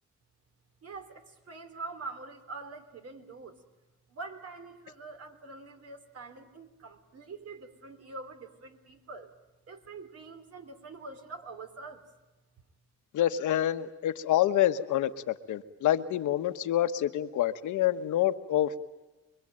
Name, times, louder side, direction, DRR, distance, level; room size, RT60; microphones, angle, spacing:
voice 1, 0.8-3.6 4.1-9.3 9.7-12.0, right 3 dB, 55° right, 7 dB, 3.5 m, -44 dB
voice 2, 13.1-18.7, left 12 dB, 80° left, 10 dB, 1.4 m, -27 dB
26.0 x 23.0 x 9.0 m, 1.1 s
cardioid pair, 90°, 30 cm